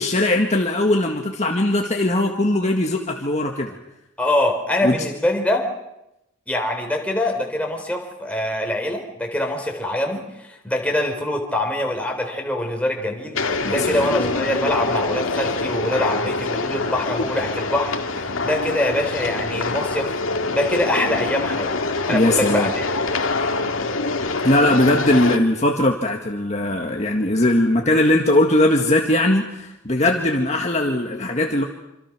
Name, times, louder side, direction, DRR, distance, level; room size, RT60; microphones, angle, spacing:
voice 1, 0.0-3.8 4.8-5.0 13.6-14.1 22.1-22.7 24.4-31.6, left 1 dB, 35° left, 2 dB, 1.8 m, -19 dB
voice 2, 4.2-5.7 6.5-20.1 20.5-21.7 22.1-22.8, left 1 dB, 5° left, 2 dB, 4.0 m, -24 dB
sound 1, 13.3-25.4, left 3 dB, 90° left, 2.1 m, -25 dB
27.0 x 26.5 x 6.2 m, 0.90 s
head